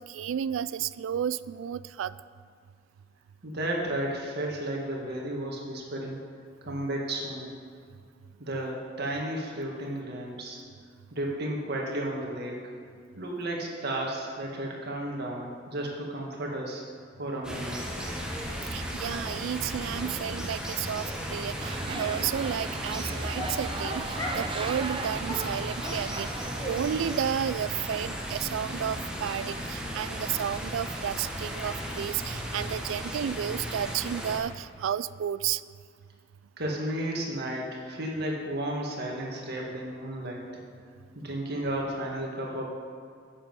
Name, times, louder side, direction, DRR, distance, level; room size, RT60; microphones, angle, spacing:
voice 1, 0.0-2.1 18.7-26.3 26.7-35.6, right 9 dB, 80° right, 18 dB, 0.3 m, -32 dB
voice 2, 3.4-6.2 6.7-7.5 8.4-10.6 11.1-12.7 13.2-16.8 17.2-17.8 36.6-40.5 41.1-42.6, right 1 dB, 55° right, -1 dB, 1.8 m, -33 dB
sound 1, 17.4-34.4, equal, 5° right, 1.2 m, -35 dB
Dog, 21.0-21.3 21.9-22.1 22.9-23.0 23.3-24.5 24.8-24.9 25.3-26.8 27.0-27.2 27.5-27.6 27.9-28.0 28.4-28.5 28.9-29.0 29.2-29.3, left 1 dB, 20° left, 1.3 m, -39 dB
sound 2, 21.6-27.2, right 3 dB, 30° right, 0.6 m, -37 dB
10.0 x 7.6 x 5.4 m, 2.2 s
head